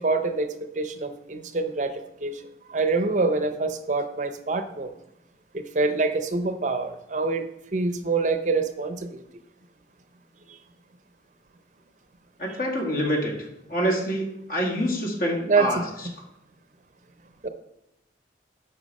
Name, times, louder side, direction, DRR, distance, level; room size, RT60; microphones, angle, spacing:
voice 1, 0.0-2.4 2.7-4.9 5.5-9.2 10.5-10.6 15.4-15.8 17.4-17.5, right 3 dB, 45° right, 9 dB, 0.6 m, -26 dB
voice 2, 12.4-13.3 13.7-16.1, equal, 50° left, 0 dB, 1.9 m, -26 dB
8.2 x 5.9 x 5.3 m, 0.83 s
head